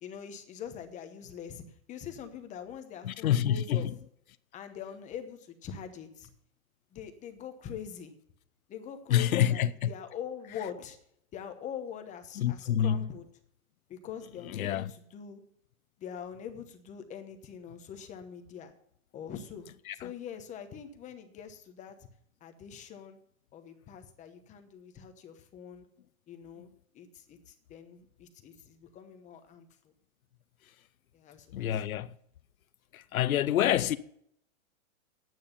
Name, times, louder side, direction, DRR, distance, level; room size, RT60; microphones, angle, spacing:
voice 1, 0.0-3.9 4.5-6.3 6.9-8.1 8.7-11.0 11.3-13.3 13.9-15.4 16.0-18.7 19.1-19.7 19.9-22.1 22.4-23.2 23.5-25.8 26.3-26.7 26.9-29.7 31.1-31.7, left 8 dB, 20° left, 1.0 m, -43 dB
voice 2, 3.0-3.9 9.1-9.9 12.4-13.0 14.5-14.9 19.9-20.1 31.5-32.1 32.9-34.0, left 10 dB, 90° left, 0.7 m, -27 dB
10.5 x 9.1 x 5.3 m
hypercardioid pair, 145°, 41 cm